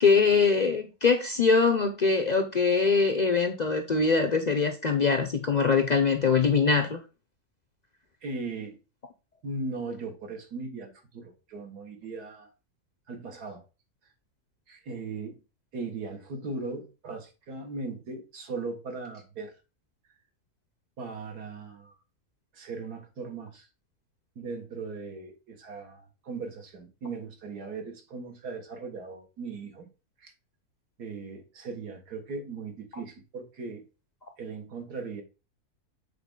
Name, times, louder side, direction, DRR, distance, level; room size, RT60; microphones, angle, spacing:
voice 1, 0.0-7.0, left 5 dB, 70° left, 0.4 m, -23 dB
voice 2, 8.2-8.8 9.4-12.5 13.1-13.6 14.7-15.4 15.7-19.5 21.0-21.9 22.5-23.7 24.4-29.9 30.2-30.3 31.0-33.8 34.4-35.2, right 3 dB, 85° right, 2.1 m, -38 dB
7.8 x 4.2 x 3.7 m
omnidirectional pair, 1.6 m